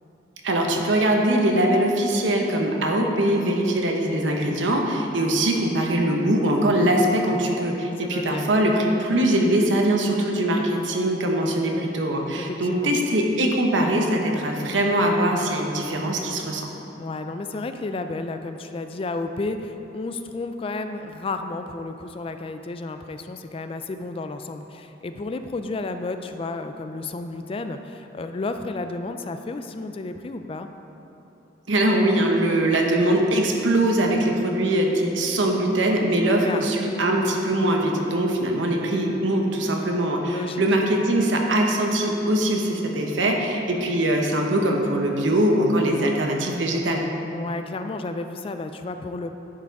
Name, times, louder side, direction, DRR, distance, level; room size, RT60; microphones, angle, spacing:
voice 1, 0.4-16.7 31.7-47.1, right 1 dB, 80° right, 1 dB, 1.0 m, -22 dB
voice 2, 8.0-8.5 12.4-12.9 17.0-30.7 36.4-36.7 40.2-40.7 47.3-49.3, left 3 dB, 30° left, 8 dB, 0.3 m, -32 dB
10.5 x 4.7 x 4.7 m, 3.0 s
head